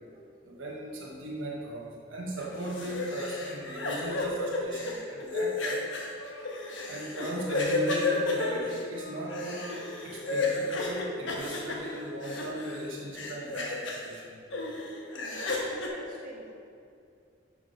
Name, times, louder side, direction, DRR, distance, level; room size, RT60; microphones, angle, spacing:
voice 1, 0.5-5.8 6.9-9.8 10.0-14.4, right 1 dB, 85° right, -3 dB, 1.1 m, -37 dB
sound 1, 2.4-12.9 13.1-14.1 14.5-15.9, left 3 dB, 75° left, 1.1 m, -32 dB
voice 2, 14.9-16.5, right 1 dB, 45° right, -4 dB, 1.5 m, -47 dB
6.5 x 5.7 x 5.1 m, 2.4 s
head